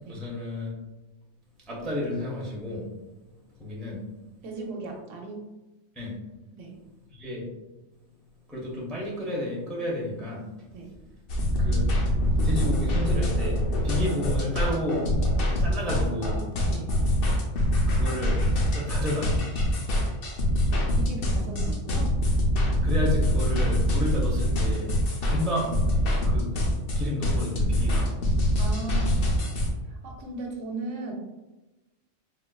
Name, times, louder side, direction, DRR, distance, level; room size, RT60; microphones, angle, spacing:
voice 1, 0.1-0.7 1.7-2.9 3.6-4.0 6.0-6.2 7.1-7.5 8.5-10.4 11.6-11.9 12.4-15.1 15.6-16.4 17.9-18.4 18.7-19.4 22.8-24.9 25.3-25.8 26.3-26.5 27.0-28.1, left 1 dB, ahead, -4 dB, 0.4 m, -31 dB
voice 2, 4.4-5.5 6.5-6.8 10.7-11.0 16.7-16.9 20.9-22.1 28.6-29.2 29.8-31.1, right 2 dB, 80° right, 2 dB, 0.9 m, -37 dB
sound 1, 11.3-29.7, equal, 60° left, 0.7 m, -24 dB
4.0 x 2.3 x 2.2 m, 1.1 s
omnidirectional pair, 1.3 m